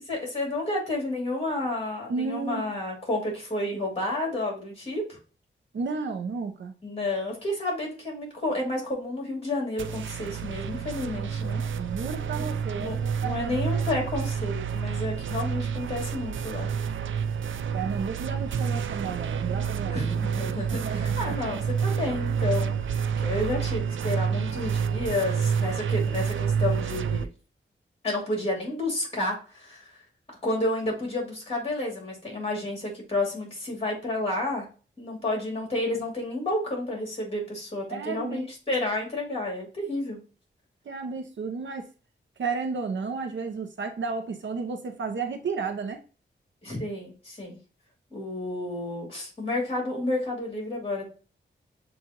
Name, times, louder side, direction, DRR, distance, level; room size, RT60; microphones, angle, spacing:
voice 1, 0.1-5.2 6.8-11.6 12.8-16.7 19.9-27.3 28.0-29.9 30.4-34.7 35.0-40.2 46.6-47.6 48.1-51.1, left 2 dB, 30° left, -1 dB, 2.7 m, -31 dB
voice 2, 2.1-2.7 5.7-6.7 11.8-14.0 17.7-20.1 20.7-21.4 37.9-38.5 40.9-41.9 42.4-46.0, right 5 dB, 75° right, 5 dB, 0.8 m, -33 dB
sound 1, 9.8-27.2, right 7 dB, 90° right, 0.4 m, -29 dB
7.1 x 2.6 x 2.9 m, 0.36 s
wide cardioid pair, 100°, 20 cm